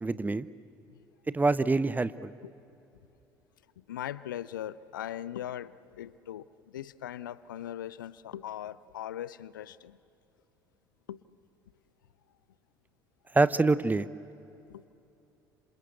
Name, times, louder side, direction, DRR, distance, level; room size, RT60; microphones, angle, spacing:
voice 1, 0.0-0.5 1.3-2.3 13.3-14.1, right 3 dB, 15° right, 16 dB, 0.9 m, -25 dB
voice 2, 3.8-10.0 11.1-11.2 14.7-14.8, left 11 dB, 75° left, 19 dB, 0.6 m, -40 dB
27.0 x 27.0 x 8.2 m, 2.8 s
figure-of-eight pair, 55°, 11 cm